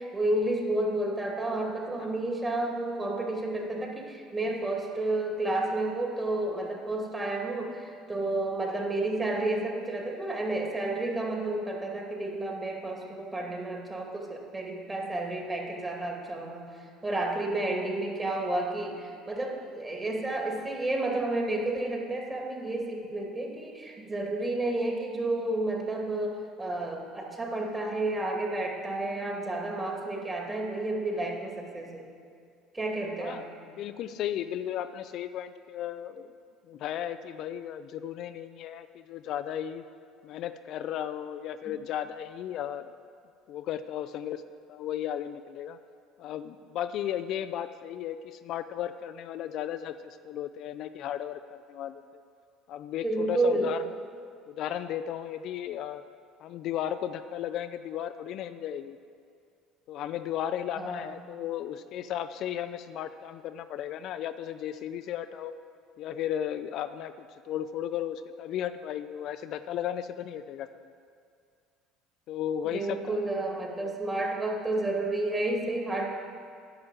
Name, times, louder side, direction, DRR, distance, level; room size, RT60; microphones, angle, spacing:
voice 1, 0.0-16.7 17.0-32.0 32.7-33.5 53.0-53.7 60.8-61.1 72.7-76.1, right 2 dB, 20° right, 0 dB, 2.4 m, -31 dB
voice 2, 33.8-36.3 36.7-39.8 40.2-42.9 43.5-44.4 44.7-45.8 46.2-52.0 52.7-53.9 54.5-56.0 56.4-59.0 59.9-65.5 66.0-70.7 72.3-73.2 73.8-74.0, left 10 dB, 60° left, 10 dB, 0.4 m, -35 dB
9.6 x 6.2 x 7.7 m, 2.3 s
hypercardioid pair, 70°, 0 cm